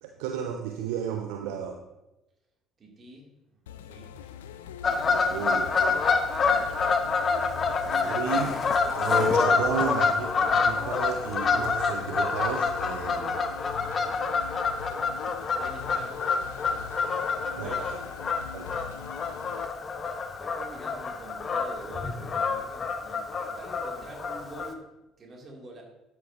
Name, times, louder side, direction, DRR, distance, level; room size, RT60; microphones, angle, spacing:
voice 1, 0.0-1.8 5.1-6.0 7.8-8.5 8.9-13.4 17.6-17.8 18.5-18.7, right 8 dB, 65° right, 5 dB, 0.7 m, -33 dB
voice 2, 2.8-4.2 15.5-16.8 17.5-18.5 20.4-25.8, right 2 dB, 40° right, -1 dB, 3.0 m, -46 dB
sound 1, 3.7-19.7, left 9 dB, 75° left, 0.5 m, -43 dB
Fowl / Bird vocalization bird call bird song, 4.8-24.7, left 4 dB, 40° left, 1.2 m, -27 dB
12.5 x 9.8 x 2.9 m, 0.96 s
figure-of-eight pair, 55°, 0 cm